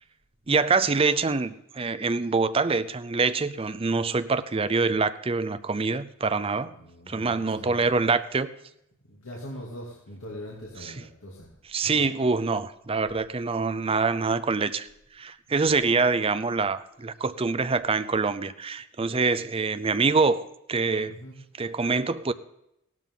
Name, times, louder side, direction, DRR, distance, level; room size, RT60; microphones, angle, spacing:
voice 1, 0.5-6.7 7.1-8.5 10.8-10.9 11.7-14.9 15.2-21.1 21.6-22.3, right 4 dB, 25° right, 12 dB, 0.5 m, -25 dB
voice 2, 6.8-7.8 9.1-11.5 11.8-12.0 21.1-21.3, equal, 75° left, -3 dB, 2.7 m, -41 dB
16.5 x 12.5 x 3.9 m, 0.80 s
head